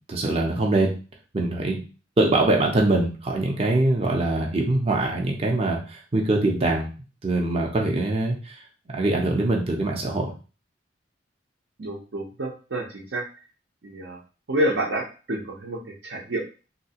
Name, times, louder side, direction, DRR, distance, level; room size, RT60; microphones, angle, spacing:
voice 1, 0.1-0.9 1.3-1.8 2.2-6.9 7.2-8.5 8.9-10.3, right 2 dB, 35° right, 0 dB, 0.6 m, -23 dB
voice 2, 11.8-13.2 13.8-14.2 14.5-16.4, right 1 dB, 80° right, -3 dB, 0.7 m, -28 dB
3.2 x 2.8 x 2.8 m, 0.35 s
head